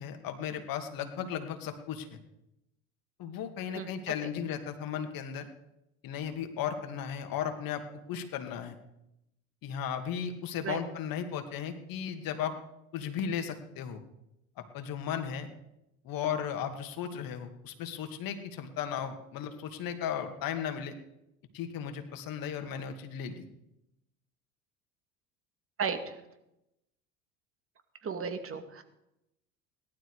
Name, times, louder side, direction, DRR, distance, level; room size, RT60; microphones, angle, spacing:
voice 1, 0.0-2.2 3.2-5.5 6.0-7.8 8.1-8.8 9.6-12.5 12.9-14.0 14.6-15.5 16.0-20.9 21.5-23.5, left 8 dB, 55° left, 7 dB, 2.4 m, -35 dB
voice 2, 25.8-26.2 28.0-28.8, right 6 dB, 35° right, 7 dB, 2.3 m, -34 dB
18.0 x 12.5 x 4.9 m, 0.87 s
hypercardioid pair, 70°, 40 cm